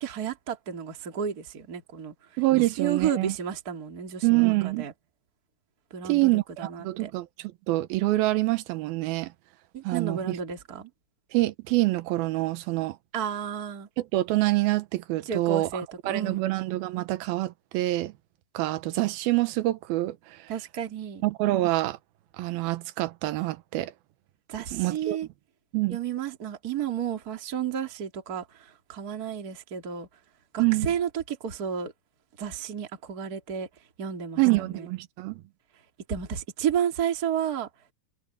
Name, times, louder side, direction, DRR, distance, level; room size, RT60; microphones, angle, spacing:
voice 1, 0.0-2.1 2.6-4.9 5.9-7.1 9.7-10.9 13.1-13.9 15.3-16.5 20.5-21.2 24.5-25.3 25.9-30.1 30.5-31.9 32.4-33.7 34.0-34.9 36.1-37.7, right 8 dB, 25° right, 2.4 m, -32 dB
voice 2, 2.4-3.3 4.2-4.9 6.0-9.3 9.8-10.4 11.3-13.0 14.1-18.1 18.5-20.4 21.2-22.0 22.4-23.9 24.7-25.2 25.7-26.0 30.6-30.9 34.4-35.4, right 19 dB, 75° right, 2.6 m, -26 dB
omnidirectional pair, 4.7 m